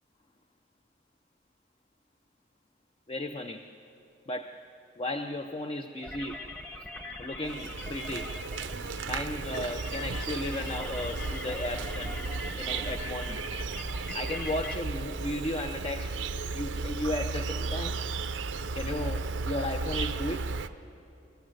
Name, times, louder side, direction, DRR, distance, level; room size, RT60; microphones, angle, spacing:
voice 1, 3.1-3.7 4.3-4.6 5.0-6.5 7.2-8.4 9.0-12.3 12.6-13.4 14.1-16.2 16.5-18.0 18.7-20.5, left 1 dB, 30° left, 7 dB, 0.6 m, -35 dB
sound 1, 6.0-14.8, left 2 dB, 10° left, 1.0 m, -42 dB
Insect, 7.4-20.7, right 4 dB, 75° right, 0.7 m, -34 dB
25.0 x 15.0 x 7.8 m, 2.8 s
head